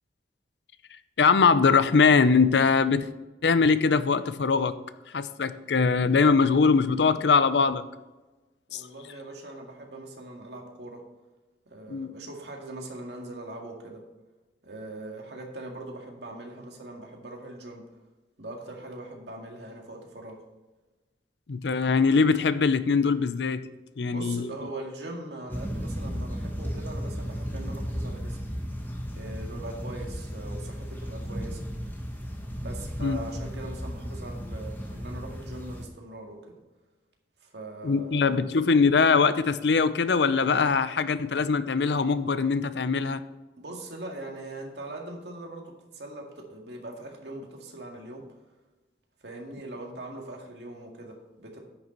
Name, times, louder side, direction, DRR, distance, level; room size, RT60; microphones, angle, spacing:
voice 1, 1.2-3.1 3.4-4.8 5.1-7.9 8.7-8.9 11.9-12.1 21.5-23.7 24.0-24.5 33.0-33.2 37.8-43.2, left 5 dB, 75° left, 14 dB, 0.6 m, -22 dB
voice 2, 8.7-11.0 11.7-14.0 14.6-17.9 18.4-20.4 24.1-28.5 29.1-31.6 32.6-36.6 37.4-38.5 43.6-48.3 49.2-51.6, right 2 dB, 75° right, 1 dB, 2.0 m, -41 dB
sound 1, 25.5-35.8, equal, 10° left, 1.5 m, -35 dB
9.9 x 6.7 x 4.4 m, 1.1 s
head